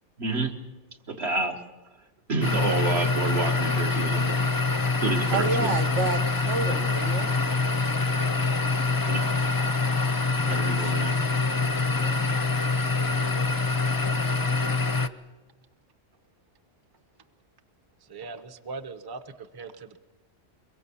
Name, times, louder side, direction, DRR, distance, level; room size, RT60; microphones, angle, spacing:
voice 1, 0.2-0.5 1.1-1.6 2.3-4.6 5.0-5.7 7.7-7.8 9.1-9.3 10.5-11.2, right 3 dB, 60° right, 4 dB, 2.0 m, -29 dB
sound 1, 2.4-15.1, left 3 dB, 25° left, 0.6 m, -25 dB
voice 2, 5.3-7.3 11.9-12.4, right 4 dB, 75° right, 6 dB, 1.5 m, -30 dB
voice 3, 18.0-20.0, right 4 dB, 20° right, 9 dB, 0.8 m, -41 dB
23.5 x 22.5 x 7.0 m, 1.2 s
omnidirectional pair, 1.2 m